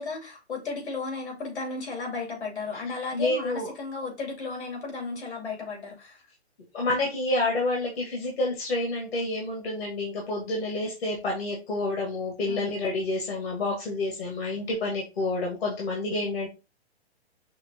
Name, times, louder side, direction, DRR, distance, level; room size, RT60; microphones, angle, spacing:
voice 1, 0.0-6.2 12.5-12.7, left 4 dB, 75° left, 2.8 m, -34 dB
voice 2, 3.1-3.7 6.7-16.5, left 2 dB, 60° left, 1.8 m, -29 dB
5.8 x 2.9 x 2.9 m
hypercardioid pair, 140°, 33 cm